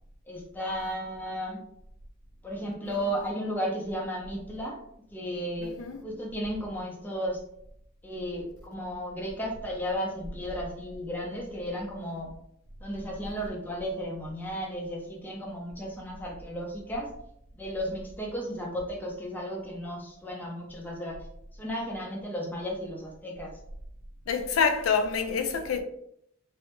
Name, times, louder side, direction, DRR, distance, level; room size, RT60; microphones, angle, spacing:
voice 1, 0.3-1.7 2.4-4.8 5.1-5.8 6.0-7.4 8.0-12.3 12.8-17.1 17.6-21.2 21.6-23.5, equal, 10° left, 0.5 m, -34 dB
voice 2, 5.6-6.0 24.3-25.8, left 5 dB, 85° left, 0.4 m, -27 dB
2.1 x 2.0 x 2.9 m
head